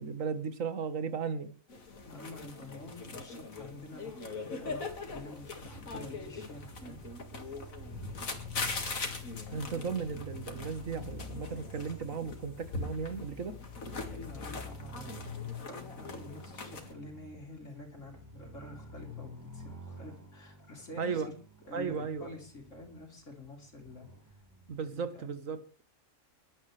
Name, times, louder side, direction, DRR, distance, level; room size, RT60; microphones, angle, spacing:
voice 1, 0.0-1.5 9.5-13.6 21.0-21.3 21.7-22.3 24.7-25.6, right 5 dB, 75° right, 11 dB, 1.8 m, -35 dB
sound 1, 1.7-16.9, left 3 dB, 90° left, 2.5 m, -42 dB
voice 2, 2.0-7.0 14.1-21.3 21.6-24.3 24.8-25.3, left 2 dB, 65° left, 0 dB, 4.4 m, -48 dB
sound 2, 5.6-24.8, left 2 dB, 15° right, 3.9 m, -47 dB
25.5 x 12.0 x 3.3 m, 0.35 s
omnidirectional pair, 1.4 m